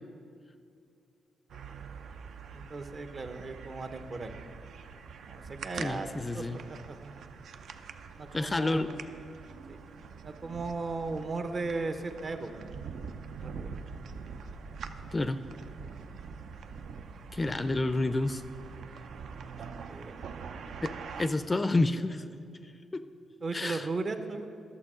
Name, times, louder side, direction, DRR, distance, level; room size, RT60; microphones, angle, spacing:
sound 1, 1.5-21.3, right 5 dB, 70° right, 0.5 m, -44 dB
voice 1, 2.5-4.4 5.2-7.1 8.1-9.0 9.7-9.8 10.2-12.6 13.3-13.8 19.9-20.7 23.4-24.5, right 3 dB, 45° right, 8 dB, 0.8 m, -37 dB
voice 2, 5.8-6.6 8.3-8.9 15.1-15.4 17.3-18.4 20.8-22.2 22.9-23.1 23.5-23.9, left 2 dB, 25° left, 11 dB, 0.4 m, -29 dB
11.5 x 6.8 x 5.0 m, 2.4 s
cardioid pair, 75°, 0 cm